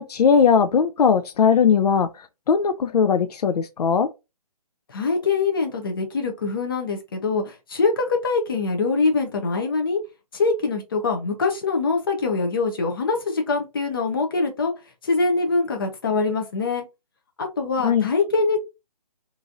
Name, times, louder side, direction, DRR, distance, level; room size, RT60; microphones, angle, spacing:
voice 1, 0.0-4.1 17.8-18.1, left 6 dB, 85° left, 0.4 m, -19 dB
voice 2, 4.9-10.0 10.3-14.7 15.0-16.8 17.4-18.6, left 4 dB, 35° left, 0.7 m, -23 dB
2.9 x 2.6 x 2.4 m
hypercardioid pair, 170°, 20 cm